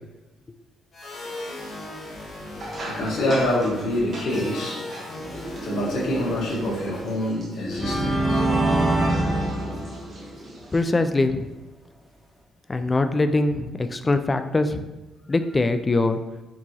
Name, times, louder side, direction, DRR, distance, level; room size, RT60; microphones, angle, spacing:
sound 1, 0.9-7.5, left 2 dB, 45° left, 1.1 m, -38 dB
sound 2, 2.5-10.8, right 1 dB, 50° right, 1.1 m, -39 dB
voice 1, 2.8-4.8 5.6-8.4, left 1 dB, 70° left, -5 dB, 1.4 m, -26 dB
sound 3, 6.8-6.9 7.6-10.4, right 1 dB, 5° right, 0.7 m, -23 dB
voice 2, 10.7-11.5 12.7-14.9 15.3-16.2, left 2 dB, 25° left, 9 dB, 0.3 m, -22 dB
4.6 x 2.9 x 2.8 m, 1.1 s
cardioid pair, 90°, 0 cm